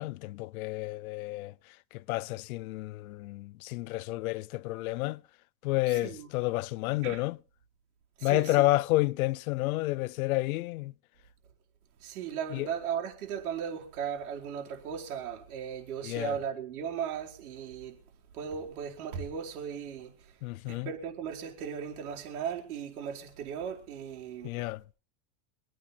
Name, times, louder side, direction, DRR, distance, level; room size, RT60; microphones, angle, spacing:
voice 1, 0.0-1.5 1.9-5.2 5.6-7.4 8.2-10.9 12.5-12.7 16.0-16.4 20.4-20.9 24.4-24.8, left 19 dB, 75° left, 0.6 m, -30 dB
voice 2, 5.9-6.3 7.0-7.2 8.2-8.7 12.0-18.0 18.3-20.3 20.7-24.6, right 8 dB, 85° right, 4.7 m, -37 dB
26.0 x 9.4 x 4.3 m
supercardioid pair, 160°, 43 cm